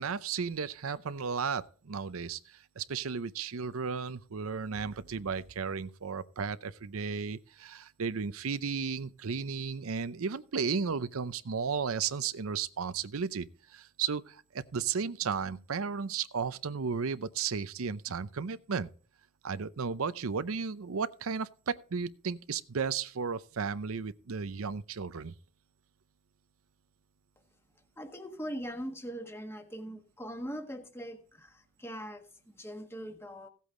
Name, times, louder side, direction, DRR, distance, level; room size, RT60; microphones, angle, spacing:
voice 1, 0.0-18.9 19.4-25.3, right 5 dB, 80° right, 0.6 m, -34 dB
voice 2, 28.0-33.5, equal, 10° left, 1.4 m, -41 dB
15.5 x 8.3 x 3.8 m
head